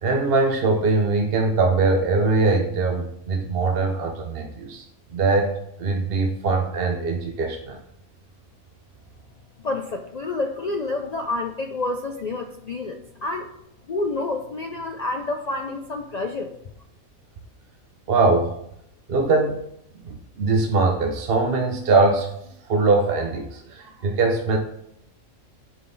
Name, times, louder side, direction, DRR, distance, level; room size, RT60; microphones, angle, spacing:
voice 1, 0.0-4.8 5.1-5.5 5.8-7.8 18.1-18.5 19.1-19.6 20.0-22.3 22.7-24.6, right 3 dB, 50° right, 2 dB, 0.8 m, -21 dB
voice 2, 9.6-13.5 13.9-16.5, left 2 dB, 70° left, 4 dB, 0.4 m, -28 dB
10.0 x 3.8 x 3.9 m, 0.77 s
omnidirectional pair, 1.4 m